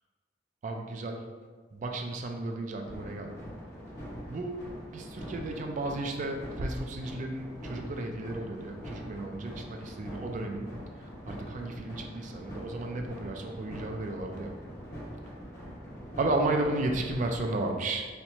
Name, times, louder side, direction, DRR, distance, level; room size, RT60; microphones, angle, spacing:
voice 1, 0.6-1.2 1.7-3.5 4.3-4.7 4.9-10.7 11.3-14.5 16.2-18.1, right 2 dB, 40° right, 3 dB, 0.3 m, -33 dB
sound 1, 2.8-17.4, equal, 55° left, 1.5 m, -43 dB
4.3 x 2.1 x 2.7 m, 1.5 s
head